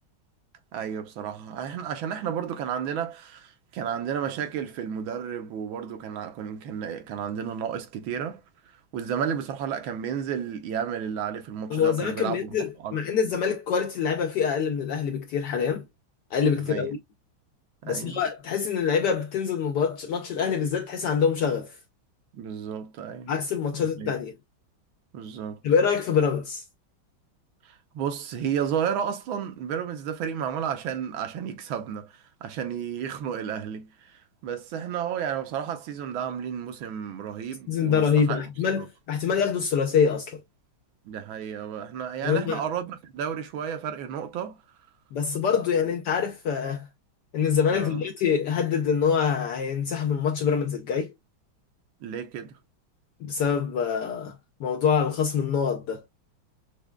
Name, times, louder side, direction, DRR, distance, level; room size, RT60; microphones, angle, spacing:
voice 1, 0.7-8.4 8.9-12.6 12.8-13.0 16.7-16.9 17.8-18.2 22.3-23.3 23.8-24.1 25.1-25.6 27.6-38.4 38.8-38.9 41.0-44.6 47.7-48.0 52.0-52.6, right 8 dB, 75° right, 1.5 m, -32 dB
voice 2, 11.7-15.8 16.3-17.0 17.8-21.8 23.3-24.3 25.6-26.6 37.7-40.4 42.2-42.6 45.1-46.9 47.3-51.1 53.2-56.0, left 6 dB, 75° left, 1.0 m, -25 dB
6.1 x 2.2 x 2.2 m
omnidirectional pair, 2.3 m